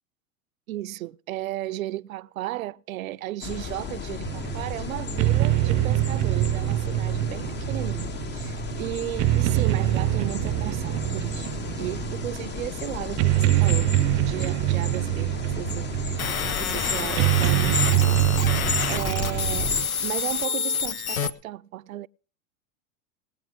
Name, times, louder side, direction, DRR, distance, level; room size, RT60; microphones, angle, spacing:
voice 1, 0.7-11.5 11.8-13.9 14.3-18.3 18.9-19.7 20.0-22.1, right 15 dB, 80° right, 0.6 m, -35 dB
sound 1, 3.4-19.8, left 6 dB, 25° left, 0.9 m, -34 dB
sound 2, 4.2-19.9, right 16 dB, 40° right, 0.6 m, -25 dB
sound 3, 16.2-21.3, left 7 dB, 90° left, 0.9 m, -28 dB
19.5 x 8.2 x 5.0 m
hypercardioid pair, 100°, 41 cm